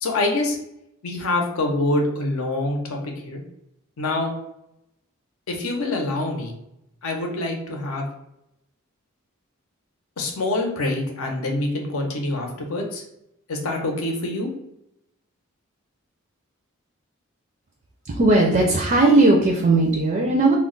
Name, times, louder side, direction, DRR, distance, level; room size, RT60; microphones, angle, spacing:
voice 1, 0.0-0.6 1.0-3.4 4.0-4.3 5.5-6.5 7.0-8.1 10.2-13.0 13.5-14.5, left 2 dB, 80° left, 2 dB, 0.6 m, -25 dB
voice 2, 18.1-20.6, right 2 dB, 35° right, 0 dB, 0.4 m, -17 dB
2.2 x 2.0 x 3.7 m, 0.80 s
head